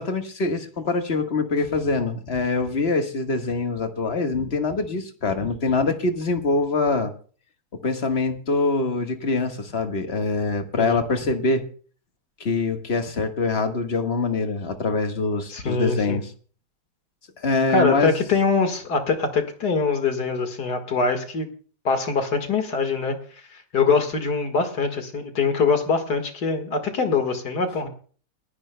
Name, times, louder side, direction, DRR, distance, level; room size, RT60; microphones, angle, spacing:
voice 1, 0.0-7.1 7.8-11.7 12.4-16.3 17.4-18.2, left 3 dB, 35° left, 5 dB, 1.5 m, -24 dB
voice 2, 15.5-16.2 17.7-21.5 21.8-23.2 23.5-27.9, left 4 dB, 50° left, 6 dB, 2.2 m, -23 dB
30.0 x 10.5 x 2.2 m, 0.42 s
omnidirectional pair, 2.3 m